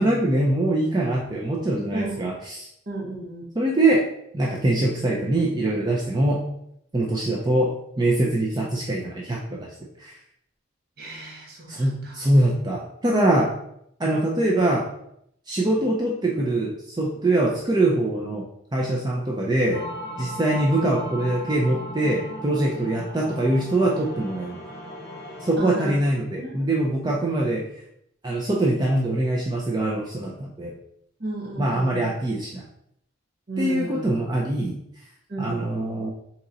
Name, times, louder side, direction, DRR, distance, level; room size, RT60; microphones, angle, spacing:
voice 1, 0.0-2.7 3.6-4.1 4.3-6.4 6.9-10.2 11.7-13.6 14.0-14.9 15.5-18.5 18.7-19.9 20.2-24.6 25.4-27.7 28.2-30.7 31.6-32.6 33.6-34.8 35.4-36.1, right 1 dB, 20° right, -2 dB, 0.5 m, -23 dB
voice 2, 1.9-2.4 2.9-3.4 11.0-12.2 25.6-26.0 26.4-26.6 31.2-32.1 33.5-34.1 35.3-35.7, right 2 dB, 50° right, -2 dB, 1.0 m, -34 dB
sound 1, 19.7-25.6, equal, 55° left, 0.9 m, -37 dB
3.8 x 2.9 x 3.9 m, 0.72 s
head